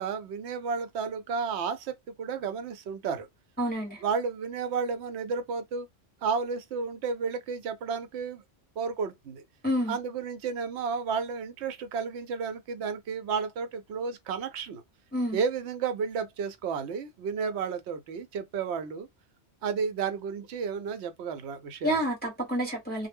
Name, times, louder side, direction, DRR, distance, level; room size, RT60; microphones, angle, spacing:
voice 1, 0.0-3.3 4.0-5.9 6.2-8.4 8.8-9.4 9.9-14.8 15.3-19.1 19.6-22.0, right 5 dB, 75° right, 0.8 m, -32 dB
voice 2, 3.6-4.0 9.6-10.0 15.1-15.4 21.8-23.1, equal, 10° left, 0.8 m, -28 dB
2.1 x 2.0 x 3.4 m
omnidirectional pair, 1.2 m